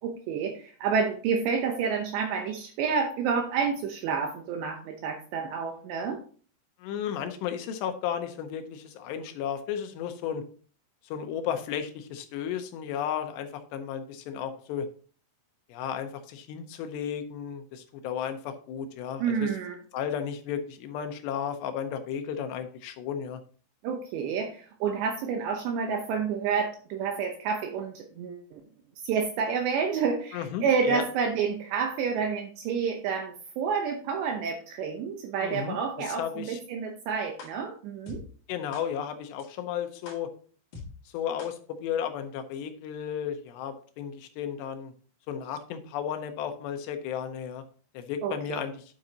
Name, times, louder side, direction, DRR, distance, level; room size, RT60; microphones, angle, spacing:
voice 1, 0.0-6.2 19.2-19.8 23.8-28.6 29.0-38.2 48.2-48.6, right 6 dB, 75° right, 3 dB, 2.8 m, -29 dB
voice 2, 6.8-10.4 11.0-14.9 15.7-19.5 19.9-23.4 30.3-31.0 35.4-36.6 38.5-40.3 41.1-44.9 45.3-47.6 47.9-48.8, left 8 dB, 80° left, 7 dB, 2.6 m, -34 dB
sound 1, 37.4-37.5 38.1-38.2 38.7-38.8 39.4-39.5 40.0-40.2 40.7-40.8 41.4-41.5, left 4 dB, 55° left, 2.9 m, -41 dB
9.4 x 7.8 x 2.8 m, 0.42 s
omnidirectional pair, 5.6 m